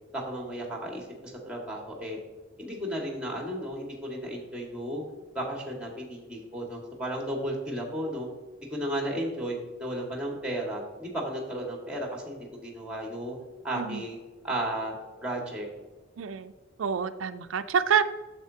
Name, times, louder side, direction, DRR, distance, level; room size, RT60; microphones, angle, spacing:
voice 1, 0.1-2.2 2.6-5.0 5.3-8.3 8.7-13.4 13.6-14.2 14.4-14.9 15.2-15.7, right 1 dB, 5° right, 0 dB, 1.8 m, -34 dB
voice 2, 16.2-16.5 16.8-18.0, right 7 dB, 90° right, 11 dB, 0.4 m, -27 dB
9.1 x 7.2 x 2.8 m, 1.2 s
head